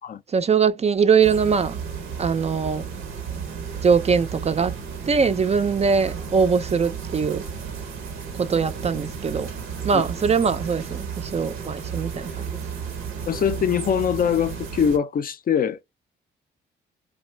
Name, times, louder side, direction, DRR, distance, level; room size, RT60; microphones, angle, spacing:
voice 1, 0.3-1.8 2.2-2.9 3.8-4.8 5.1-7.5 8.4-9.5 9.8-12.6, right 6 dB, 30° right, 0.4 m, -22 dB
sound 1, 1.2-15.0, right 6 dB, 90° right, 0.7 m, -33 dB
voice 2, 13.3-15.8, left 8 dB, 45° left, 0.4 m, -23 dB
2.4 x 2.2 x 3.2 m
supercardioid pair, 60°, 21 cm